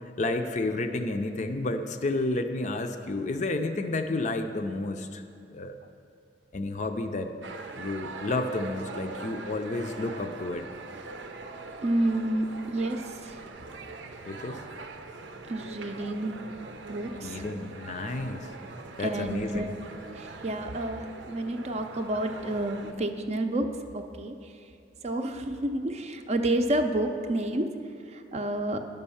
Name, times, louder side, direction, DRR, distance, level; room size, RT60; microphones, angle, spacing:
voice 1, 0.2-5.2 5.5-5.7 6.5-7.3 7.7-10.6 14.3-14.6 17.2-18.5 19.0-19.7, left 2 dB, 40° left, 7 dB, 0.5 m, -31 dB
sound 1, 7.4-22.9, right 3 dB, 90° right, 0.7 m, -42 dB
voice 2, 11.8-13.4 15.5-16.4 16.9-17.4 19.0-19.7 20.1-23.7 23.9-24.5 25.0-27.7 28.1-28.8, right 1 dB, 35° right, 6 dB, 0.5 m, -30 dB
10.5 x 5.4 x 7.0 m, 2.5 s
head